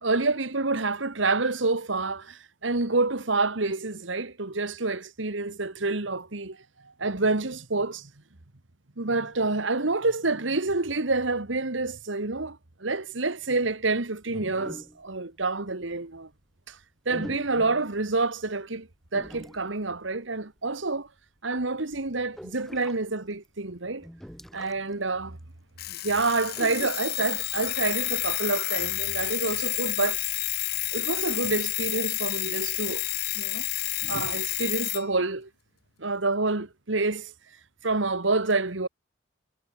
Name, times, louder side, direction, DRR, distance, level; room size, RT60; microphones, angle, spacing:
voice 1, 0.0-6.6 7.0-8.1 9.0-16.3 16.7-16.8 17.1-21.1 21.4-24.1 24.5-25.4 25.9-30.2 30.9-33.0 33.4-33.6 34.0-35.5 36.0-37.3 37.8-38.9, right 3 dB, 70° right, 1.8 m, -28 dB
sound 1, 14.2-15.2 15.7-15.9 17.1-18.0 19.1-19.8 20.6-20.8 21.1-21.2 21.5-23.0 23.4-23.5 23.9-24.9 25.2-25.3 26.5-26.9, equal, ahead, 6.2 m, -43 dB
Alarm, 25.8-35.0, left 17 dB, 55° left, 0.8 m, -30 dB
head